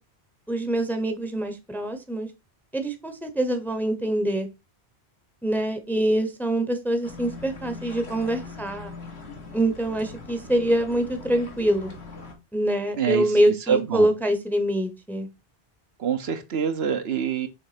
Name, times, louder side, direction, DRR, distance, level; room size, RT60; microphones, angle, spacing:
voice 1, 0.5-2.3 2.7-4.5 5.4-8.9 9.5-11.9 12.5-15.3, right 1 dB, ahead, 0.8 m, -25 dB
sound 1, 7.0-12.3, left 3 dB, 80° left, 1.8 m, -41 dB
voice 2, 13.7-14.1 16.0-17.5, right 7 dB, 75° right, 1.1 m, -25 dB
6.5 x 3.3 x 5.0 m
omnidirectional pair, 1.1 m